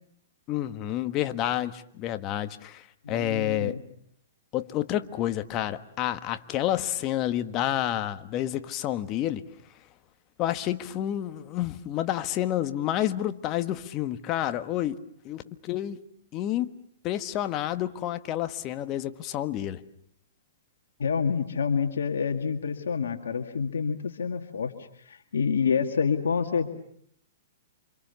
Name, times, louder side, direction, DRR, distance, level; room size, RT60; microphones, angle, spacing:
voice 1, 0.5-3.8 4.5-9.4 10.4-15.0 15.2-16.0 16.3-16.7 17.0-19.8, left 12 dB, 30° left, 1.4 m, -29 dB
voice 2, 3.0-3.8 21.0-26.7, left 6 dB, 85° left, 2.1 m, -28 dB
28.5 x 26.0 x 7.0 m
hypercardioid pair, 140°, 0 cm